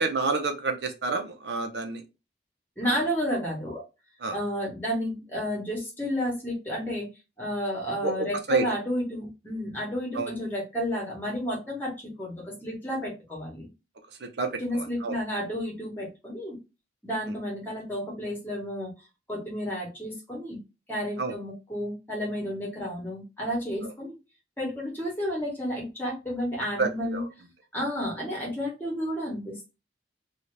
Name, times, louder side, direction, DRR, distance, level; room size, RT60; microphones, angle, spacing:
voice 1, 0.0-2.0 4.2-4.4 8.0-8.6 10.1-10.3 14.2-15.2 21.2-21.3 26.8-27.3, right 3 dB, 75° right, 6 dB, 0.6 m, -29 dB
voice 2, 2.8-3.8 4.3-7.1 7.4-13.7 14.6-16.6 17.0-18.9 19.3-20.6 20.9-24.1 24.6-27.2 27.7-29.7, equal, 10° left, -2 dB, 1.1 m, -31 dB
2.8 x 2.4 x 3.1 m, 0.27 s
head